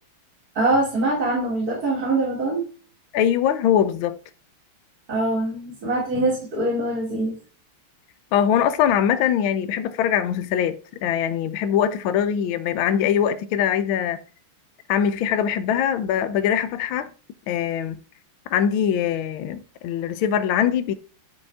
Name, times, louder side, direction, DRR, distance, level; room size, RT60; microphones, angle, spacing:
voice 1, 0.6-2.6 5.1-7.4, right 2 dB, 45° right, 3.5 m, -23 dB
voice 2, 3.1-4.2 8.3-14.2 14.9-17.1 17.5-18.0 18.5-20.9, left 9 dB, 75° left, 1.5 m, -22 dB
10.5 x 4.8 x 3.6 m
omnidirectional pair, 2.4 m